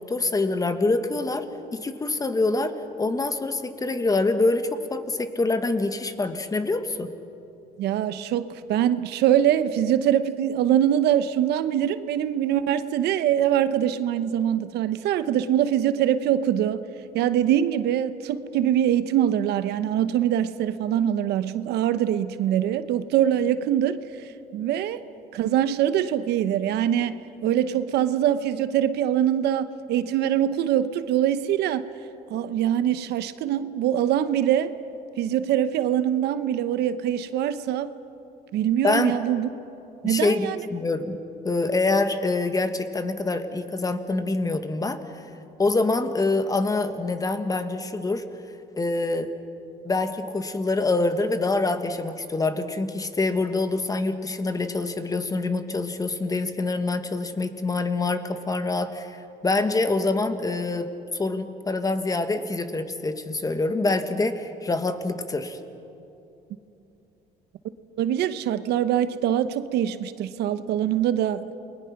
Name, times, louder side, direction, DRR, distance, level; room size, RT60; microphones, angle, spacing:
voice 1, 0.0-1.5 1.7-7.1 38.8-39.1 40.0-45.2 45.6-48.2 48.8-49.3 49.8-65.6, left 3 dB, 20° left, 9 dB, 1.5 m, -25 dB
voice 2, 7.8-16.8 17.1-24.0 24.5-25.0 25.3-31.8 32.3-34.7 35.2-37.9 38.5-39.5 40.0-40.6 68.0-71.5, right 10 dB, 80° right, 12 dB, 0.9 m, -23 dB
29.0 x 20.5 x 5.9 m, 2.8 s
cardioid pair, 110°, 17 cm